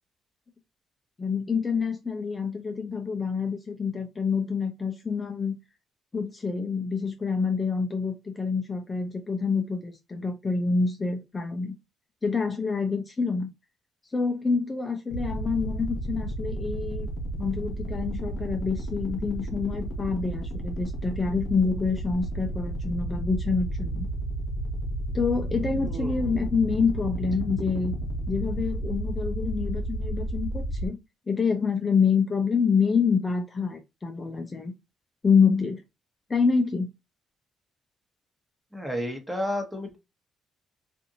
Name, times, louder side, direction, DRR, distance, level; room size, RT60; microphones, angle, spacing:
voice 1, 1.2-5.5 6.1-11.7 12.2-13.5 14.1-17.1 17.4-24.1 25.1-27.9 28.3-31.0 31.3-34.7 35.2-35.8 36.3-36.9, left 5 dB, 25° left, 0.5 m, -27 dB
sound 1, 15.1-30.9, right 1 dB, 80° left, 0.8 m, -32 dB
voice 2, 25.7-26.4 38.7-40.0, equal, 5° right, 1.0 m, -32 dB
2.6 x 2.5 x 2.6 m
cardioid pair, 90°, 0 cm